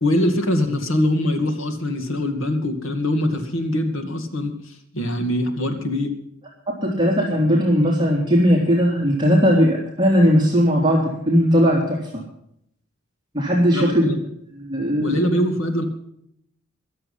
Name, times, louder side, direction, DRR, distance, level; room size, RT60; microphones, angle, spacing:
voice 1, 0.0-6.1 13.7-14.1 15.0-15.8, left 1 dB, 75° left, 5 dB, 2.3 m, -23 dB
voice 2, 6.7-12.0 13.3-14.1 14.7-15.1, equal, 20° right, -3 dB, 3.3 m, -18 dB
23.0 x 7.7 x 5.7 m, 0.72 s
head